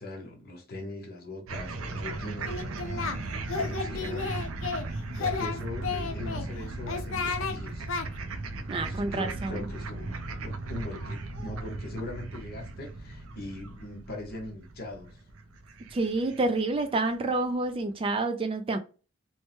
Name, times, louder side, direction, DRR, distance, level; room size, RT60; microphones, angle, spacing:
voice 1, 0.0-2.5 3.5-4.4 5.1-7.9 8.8-15.2, left 1 dB, 50° left, 1.0 m, -40 dB
sound 1, 1.5-16.8, right 2 dB, 85° right, 0.5 m, -37 dB
Singing, 2.5-3.2 3.5-4.9 5.2-6.4 6.9-7.6 7.9-8.1, left 5 dB, 70° left, 0.5 m, -32 dB
voice 2, 8.7-9.6 15.9-18.8, right 2 dB, 25° right, 0.3 m, -28 dB
3.1 x 2.1 x 3.1 m
head